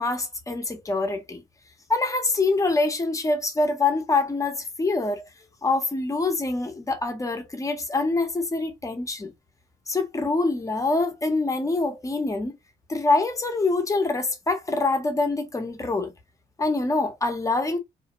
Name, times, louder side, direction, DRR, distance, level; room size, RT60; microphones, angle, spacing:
voice 1, 0.0-1.4 1.9-5.3 5.6-9.3 9.9-12.5 12.9-16.1 16.6-17.8, left 3 dB, 20° left, 0.7 m, -25 dB
2.5 x 2.0 x 2.9 m
cardioid pair, 95°, 16 cm